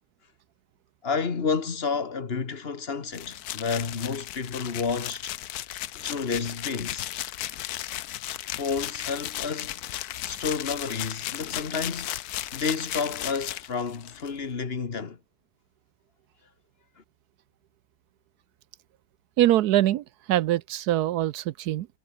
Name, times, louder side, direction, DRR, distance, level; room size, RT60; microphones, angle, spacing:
voice 1, 1.0-5.3 5.9-7.1 8.5-9.8 10.2-12.2 12.5-15.2, left 5 dB, 40° left, 1.7 m, -30 dB
sound 1, 3.1-14.3, left 13 dB, 80° left, 1.2 m, -35 dB
voice 2, 19.4-21.9, right 13 dB, 85° right, 1.2 m, -23 dB
omnidirectional pair, 1.7 m